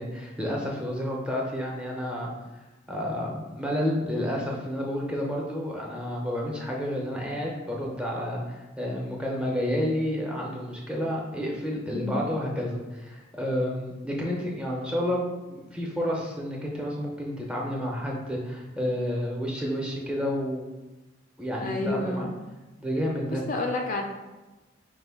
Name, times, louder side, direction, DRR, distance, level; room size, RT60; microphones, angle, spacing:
voice 1, 0.0-2.3 2.9-20.7 21.4-22.3 22.8-23.4, equal, 5° right, -2 dB, 0.6 m, -30 dB
voice 2, 11.9-12.3 21.6-22.3 23.5-24.0, left 2 dB, 40° left, 2 dB, 0.3 m, -29 dB
4.8 x 2.2 x 3.4 m, 1.1 s
head